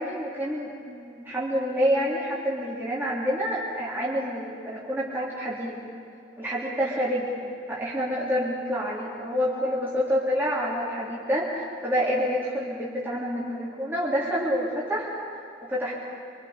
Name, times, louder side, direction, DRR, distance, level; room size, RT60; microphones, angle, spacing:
voice 1, 0.0-5.7 6.4-7.4 7.7-15.1 15.6-15.9, equal, 10° right, -7 dB, 3.6 m, -28 dB
26.0 x 26.0 x 5.2 m, 2.5 s
head